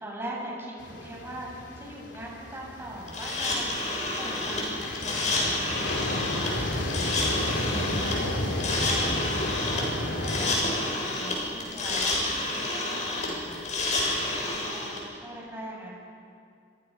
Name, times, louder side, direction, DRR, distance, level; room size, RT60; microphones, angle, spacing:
voice 1, 0.0-6.9 7.2-14.2 14.4-15.9, right 1 dB, 15° right, -4 dB, 7.6 m, -41 dB
sound 1, 0.8-10.5, left 1 dB, 75° left, 3.5 m, -32 dB
sound 2, 3.1-15.0, left 2 dB, 45° left, 7.0 m, -29 dB
29.5 x 26.0 x 5.9 m, 2.3 s
head